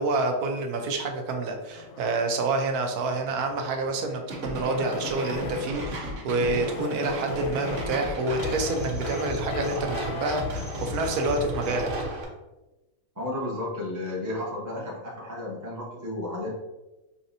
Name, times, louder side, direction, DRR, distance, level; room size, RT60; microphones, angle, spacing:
voice 1, 0.0-11.9, right 2 dB, 85° right, 4 dB, 1.1 m, -28 dB
sound 1, 1.7-5.9 6.3-10.6, left 5 dB, 85° left, 1.1 m, -40 dB
sound 2, 4.3-12.2, right 1 dB, 60° right, 1.1 m, -34 dB
voice 2, 13.1-16.5, left 1 dB, 15° right, -4 dB, 0.6 m, -33 dB
5.0 x 2.8 x 2.6 m, 1.1 s
omnidirectional pair, 1.6 m